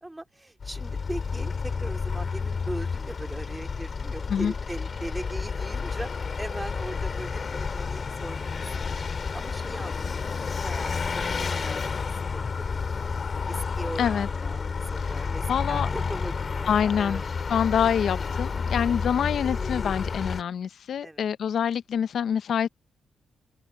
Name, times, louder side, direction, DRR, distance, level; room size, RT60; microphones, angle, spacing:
voice 1, 0.0-8.5 8.8-8.9 9.3-13.1 13.5-14.6 14.9-17.3 18.7-18.9 21.0-21.3, right 1 dB, 15° right, 2.3 m, -40 dB
Vehicle, 0.6-20.4, left 5 dB, 50° left, 2.5 m, -30 dB
voice 2, 14.0-14.3 15.5-15.9 16.7-17.2 17.5-22.7, left 8 dB, 70° left, 0.7 m, -26 dB
open air
cardioid pair, 70°, 0 cm